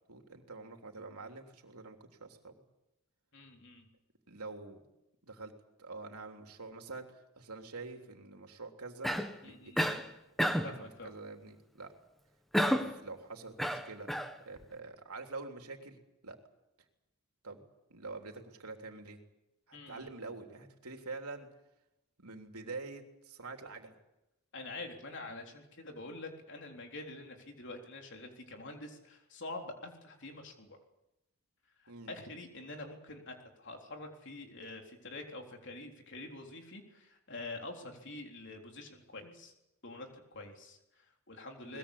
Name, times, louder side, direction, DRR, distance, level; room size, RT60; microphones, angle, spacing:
voice 1, 0.1-2.6 4.3-4.9 5.2-5.5 5.8-9.1 9.4-9.9 10.4-11.9 12.6-14.2 14.4-16.0 16.2-16.4 17.4-19.2 19.7-21.5 22.2-24.0 31.9-32.1 41.6-41.8, right 3 dB, 90° right, 4 dB, 3.3 m, -46 dB
voice 2, 3.3-3.9 9.4-9.8 10.6-11.1 19.7-20.1 24.5-30.8 31.8-39.5 39.8-41.8, left 2 dB, 55° left, 3 dB, 3.8 m, -46 dB
Cough, 9.0-9.4 9.8-10.1 10.4-10.8 12.5-13.0 13.6-14.3, equal, ahead, 1.3 m, -30 dB
22.0 x 20.5 x 8.6 m, 0.92 s
head